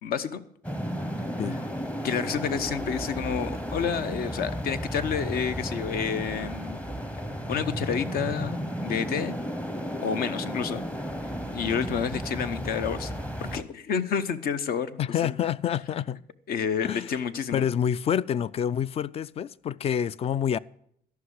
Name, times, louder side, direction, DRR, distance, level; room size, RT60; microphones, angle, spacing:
voice 1, 0.0-0.4 2.0-6.8 7.5-9.4 10.0-10.8 11.5-13.1 13.4-15.3 16.5-17.7, left 7 dB, 65° left, 0.9 m, -29 dB
sound 1, 0.6-13.6, equal, 10° left, 0.8 m, -33 dB
voice 2, 15.0-16.2 16.8-17.1 17.5-20.6, left 9 dB, 35° left, 0.3 m, -27 dB
13.0 x 5.9 x 7.8 m
cardioid pair, 110°, 17 cm